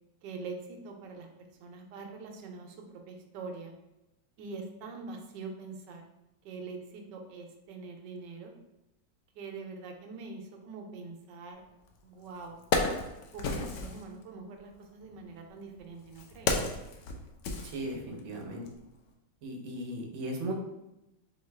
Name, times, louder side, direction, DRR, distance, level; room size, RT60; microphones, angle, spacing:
voice 1, 0.2-1.3 1.6-3.7 4.4-6.0 6.4-8.5 9.3-11.6 12.0-12.6 13.3-16.5, right 4 dB, 90° right, 3 dB, 1.3 m, -44 dB
Wood, 11.9-12.0 12.4-14.0 15.0-18.3 18.7-18.8, left 3 dB, 85° left, 0.6 m, -33 dB
voice 2, 17.6-18.7 19.4-20.5, right 1 dB, 55° right, 1 dB, 0.9 m, -37 dB
3.9 x 3.0 x 3.3 m, 0.92 s
omnidirectional pair, 1.9 m